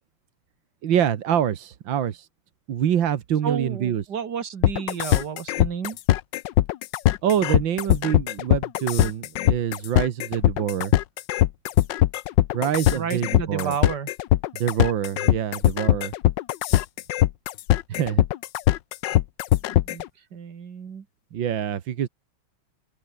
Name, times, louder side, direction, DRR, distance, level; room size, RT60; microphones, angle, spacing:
voice 1, 0.8-2.3 2.7-4.0 7.2-10.9 12.5-13.8 14.5-16.1 17.9-18.3 21.3-22.1, right 9 dB, 85° right, 2.0 m, -25 dB
voice 2, 3.4-6.0 12.9-14.1 19.7-20.0 20.3-21.0, right 7 dB, 65° right, 2.4 m, -31 dB
sound 1, 4.6-20.1, left 14 dB, 75° left, 1.4 m, -21 dB
open air
omnidirectional pair, 2.0 m